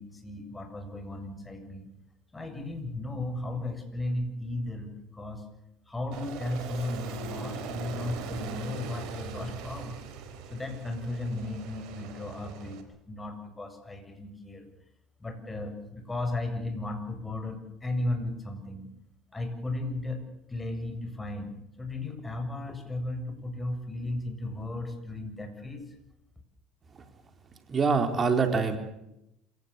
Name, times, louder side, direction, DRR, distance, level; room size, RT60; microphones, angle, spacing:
voice 1, 0.0-1.9 2.3-5.4 5.9-9.9 10.5-12.8 13.1-14.7 15.2-18.9 19.3-20.2 20.5-26.0, left 2 dB, 15° left, 6 dB, 7.6 m, -35 dB
Aircraft, 6.1-12.8, right 6 dB, 65° right, 4.5 m, -41 dB
voice 2, 27.7-28.8, right 5 dB, 35° right, 7 dB, 4.3 m, -24 dB
27.0 x 17.5 x 8.5 m, 0.83 s
hypercardioid pair, 75°, 0 cm